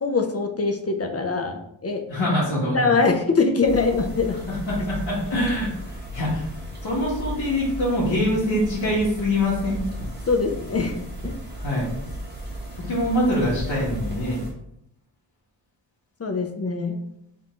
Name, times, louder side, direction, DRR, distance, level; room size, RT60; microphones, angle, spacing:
voice 1, 0.0-2.0 2.7-4.4 10.3-11.3 16.2-17.0, left 4 dB, 35° left, 4 dB, 0.5 m, -23 dB
voice 2, 2.1-2.9 4.5-6.5 6.8-9.8 11.6-11.9 12.8-14.4, left 1 dB, 60° left, -8 dB, 1.4 m, -24 dB
sound 1, 3.6-14.5, equal, 20° right, 1.2 m, -35 dB
3.6 x 2.5 x 4.4 m, 0.77 s
wide cardioid pair, 140°, 48 cm